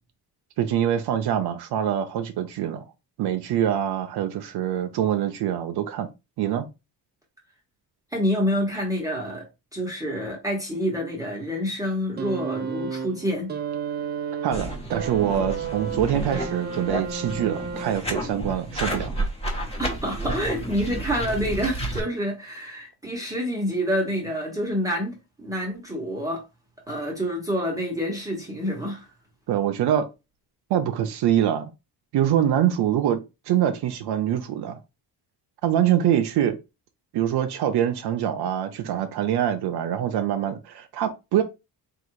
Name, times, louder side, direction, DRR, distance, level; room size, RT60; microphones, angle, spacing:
voice 1, 0.6-2.8 3.2-6.1 6.4-6.7 14.4-19.1 29.5-30.1 30.7-31.7 32.1-33.2 33.5-34.8 35.6-36.6 37.1-41.4, right 10 dB, 70° right, 0.6 m, -24 dB
voice 2, 8.1-9.5 9.7-13.5 19.8-26.4 26.9-29.1, equal, 10° right, 0.9 m, -27 dB
sound 1, 12.2-18.3 19.4-19.5, right 6 dB, 25° right, 0.5 m, -32 dB
sound 2, 14.5-22.0, right 1 dB, 15° left, 1.1 m, -31 dB
3.8 x 2.4 x 4.5 m
cardioid pair, 155°, 41 cm